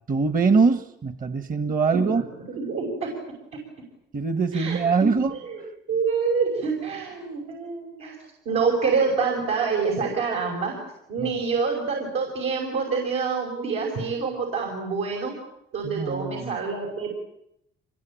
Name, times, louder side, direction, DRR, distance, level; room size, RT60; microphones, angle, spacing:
voice 1, 0.1-2.2 4.1-5.3 11.2-11.3 15.8-16.5, right 4 dB, 45° right, 11 dB, 1.3 m, -23 dB
voice 2, 1.9-2.2 2.5-3.1 4.5-5.6 5.9-8.2 8.5-10.8 11.1-15.3 15.7-17.1, right 5 dB, 85° right, -1 dB, 5.8 m, -26 dB
25.5 x 21.5 x 8.9 m, 0.79 s
cardioid pair, 90°, 20 cm